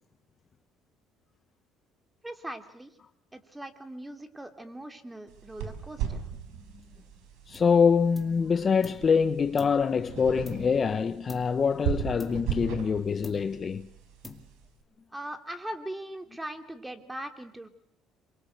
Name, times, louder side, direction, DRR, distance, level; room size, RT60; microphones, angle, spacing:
voice 1, 2.2-3.0 3.3-6.2 15.1-17.7, right 1 dB, 10° right, 3.0 m, -40 dB
sound 1, 5.3-14.7, right 9 dB, 85° right, 4.9 m, -37 dB
voice 2, 7.5-13.9, left 6 dB, 35° left, 1.0 m, -25 dB
sound 2, 7.5-7.8 8.1-9.1 9.6-10.9 11.3-11.7 12.2-12.9 13.2-13.8 14.2-14.8, left 3 dB, 10° left, 2.5 m, -47 dB
27.5 x 24.0 x 8.0 m
cardioid pair, 115°, 0 cm